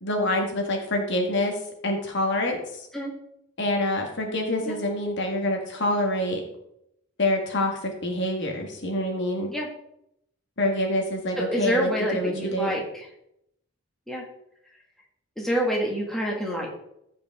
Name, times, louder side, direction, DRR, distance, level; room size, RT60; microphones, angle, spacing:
voice 1, 0.0-1.5 1.8-2.9 3.6-6.4 7.2-9.5 10.6-12.7, left 1 dB, 55° left, 2 dB, 1.8 m, -26 dB
voice 2, 11.4-13.1 14.1-14.2 15.4-16.7, equal, ahead, -3 dB, 1.9 m, -27 dB
14.5 x 5.2 x 3.7 m, 0.77 s
head